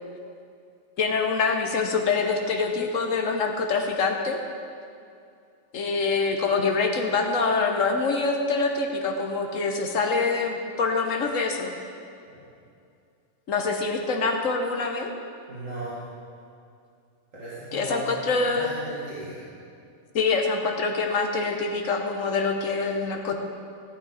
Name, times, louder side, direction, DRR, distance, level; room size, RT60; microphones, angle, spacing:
voice 1, 1.0-4.4 5.7-11.7 13.5-15.1 17.7-18.7 20.1-23.4, left 4 dB, 80° left, 3 dB, 1.4 m, -25 dB
voice 2, 15.5-16.0 17.3-19.4, right 1 dB, 75° right, -10 dB, 2.8 m, -37 dB
16.0 x 9.2 x 4.2 m, 2.4 s
omnidirectional pair, 1.3 m